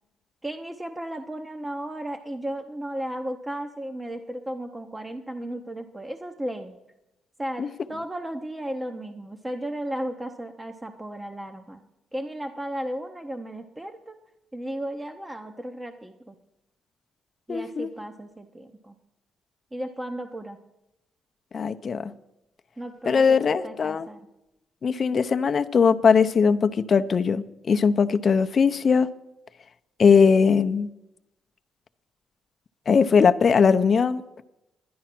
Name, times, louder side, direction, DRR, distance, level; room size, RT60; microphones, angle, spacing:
voice 1, 0.4-6.8 7.4-11.9 12.1-14.2 14.5-16.4 17.5-18.9 19.7-20.6 22.8-24.2, right 1 dB, 15° right, 5 dB, 0.8 m, -34 dB
voice 2, 17.5-17.9 21.5-22.1 23.1-24.1 24.8-29.1 30.0-30.9 32.9-34.2, left 6 dB, 45° left, 9 dB, 0.6 m, -20 dB
11.0 x 10.5 x 6.0 m, 0.92 s
cardioid pair, 90°, 0 cm